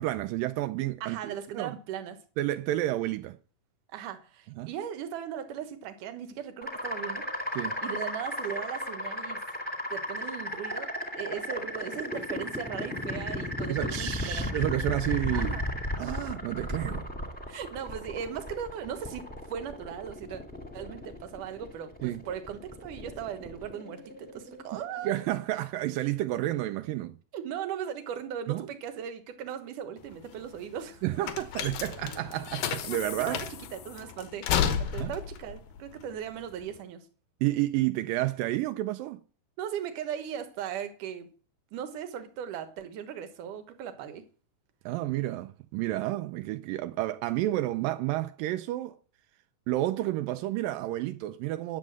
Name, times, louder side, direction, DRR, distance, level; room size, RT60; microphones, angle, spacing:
voice 1, 0.0-1.7 2.4-3.4 4.6-4.7 7.6-7.8 13.7-15.6 16.0-17.1 22.0-22.2 25.0-27.2 28.5-28.7 31.0-33.4 35.0-35.1 37.4-39.2 44.9-49.0 49.7-51.8, right 15 dB, 85° right, 2.4 m, -30 dB
voice 2, 1.0-2.2 3.9-7.3 7.8-9.4 9.9-14.7 15.3-15.7 17.5-20.4 20.7-25.1 27.3-31.0 33.3-37.1 39.6-41.3 41.7-44.2, right 9 dB, 70° right, 2.7 m, -38 dB
sound 1, 6.6-25.4, left 1 dB, 5° left, 1.2 m, -35 dB
sound 2, 30.0-36.8, left 8 dB, 85° left, 2.8 m, -33 dB
10.5 x 7.6 x 7.6 m
omnidirectional pair, 3.9 m